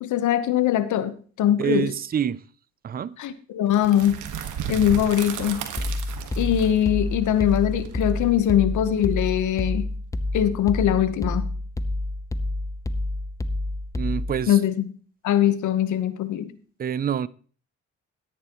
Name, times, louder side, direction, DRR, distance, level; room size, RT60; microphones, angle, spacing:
voice 1, 0.0-1.9 3.2-4.2 4.7-5.6 6.4-9.9 10.3-11.5 14.5-14.7 15.2-16.5, left 11 dB, 75° left, 1.1 m, -22 dB
voice 2, 1.6-2.4 2.8-3.2 14.0-14.5 16.8-17.3, right 8 dB, 30° right, 0.5 m, -26 dB
sound 1, 3.7-9.5, right 8 dB, 80° right, 1.6 m, -35 dB
sound 2, 5.8-14.4, left 2 dB, 10° left, 0.7 m, -28 dB
13.5 x 10.0 x 3.0 m
cardioid pair, 90°, 30 cm